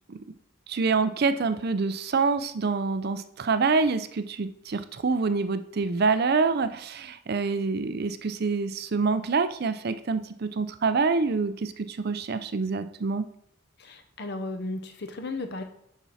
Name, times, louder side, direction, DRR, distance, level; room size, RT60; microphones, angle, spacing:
voice 1, 0.7-13.2, right 4 dB, 50° right, 11 dB, 0.5 m, -26 dB
voice 2, 13.8-15.6, left 2 dB, 55° left, 7 dB, 0.8 m, -35 dB
7.0 x 6.0 x 4.1 m, 0.73 s
head